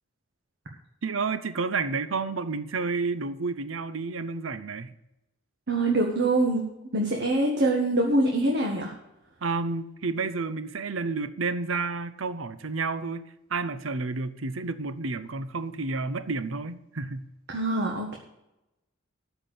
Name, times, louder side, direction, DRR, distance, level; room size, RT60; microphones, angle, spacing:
voice 1, 1.0-4.9 9.4-13.2 13.5-17.3, right 4 dB, 90° right, 0.8 m, -30 dB
voice 2, 5.7-6.6 6.9-8.9 17.5-18.1, right 2 dB, 60° right, 1.7 m, -24 dB
13.0 x 4.7 x 8.5 m
head